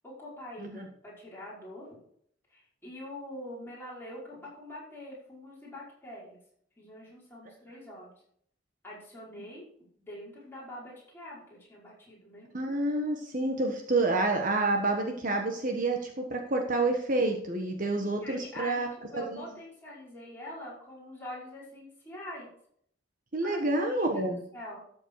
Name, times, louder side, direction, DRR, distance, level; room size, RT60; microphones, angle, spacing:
voice 1, 0.0-2.0 2.5-6.4 6.8-8.1 8.8-9.6 10.0-12.5 18.0-22.5 23.4-24.0 24.2-24.8, left 1 dB, 10° left, -6 dB, 5.2 m, -44 dB
voice 2, 12.5-18.9 19.1-19.4 23.3-24.4, right 2 dB, 45° right, 3 dB, 1.4 m, -28 dB
13.0 x 7.8 x 4.8 m, 0.66 s
head